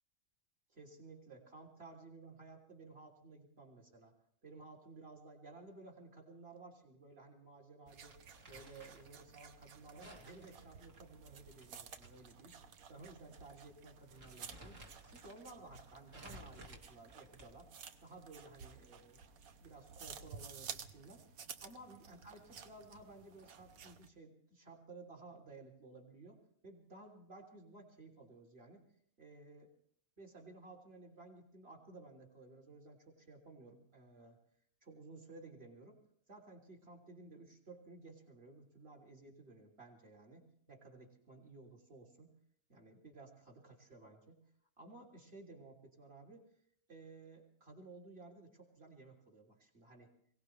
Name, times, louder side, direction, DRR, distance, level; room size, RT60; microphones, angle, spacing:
voice 1, 0.7-4.1 4.4-8.2 8.5-12.6 12.9-17.7 18.0-19.2 19.6-21.2 21.6-28.8 29.2-29.7 30.2-34.4 34.8-36.0 36.3-42.3 42.7-44.4 44.8-46.5 46.9-50.1, right 3 dB, 45° right, 2 dB, 3.5 m, -56 dB
sound 1, 7.9-24.1, right 6 dB, 85° right, 1.4 m, -54 dB
Crumpling crinkling, 8.1-9.1 10.0-12.1 12.4-12.5 13.3-13.5 13.9-15.4 16.1-17.7, right 1 dB, 60° right, 2.3 m, -56 dB
22.5 x 18.0 x 3.3 m, 0.64 s
omnidirectional pair, 1.5 m